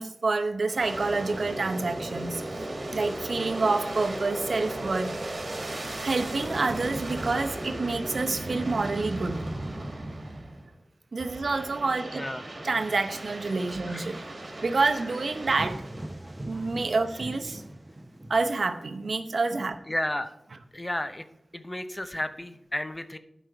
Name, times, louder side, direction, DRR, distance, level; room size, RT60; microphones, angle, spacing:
voice 1, 0.0-2.6 2.9-5.1 6.0-9.4 11.1-12.2 12.6-14.2 14.6-15.8 16.5-17.7 18.3-19.8, right 3 dB, 70° right, 8 dB, 0.8 m, -28 dB
Aircraft, 0.7-10.7 11.2-16.2, right 1 dB, 55° right, 2.0 m, -36 dB
sound 1, 15.5-19.0, right 1 dB, 25° right, 0.9 m, -40 dB
voice 2, 19.9-20.3 20.7-21.2 21.5-23.2, left 1 dB, 20° left, 10 dB, 0.7 m, -32 dB
11.5 x 5.1 x 4.5 m, 0.84 s
wide cardioid pair, 55°, 0 cm